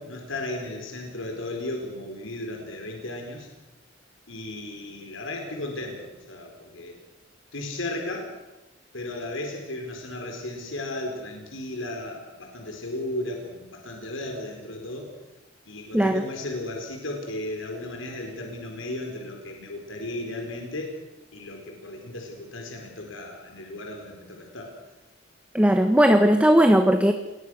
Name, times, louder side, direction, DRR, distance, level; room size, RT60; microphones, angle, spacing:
voice 1, 0.0-3.5 4.3-6.9 7.5-8.3 8.9-15.1 15.7-21.0 21.3-24.7, left 1 dB, 80° left, 2 dB, 4.5 m, -35 dB
voice 2, 25.5-27.1, equal, 5° right, 6 dB, 1.2 m, -18 dB
28.5 x 21.0 x 6.4 m, 1.0 s
head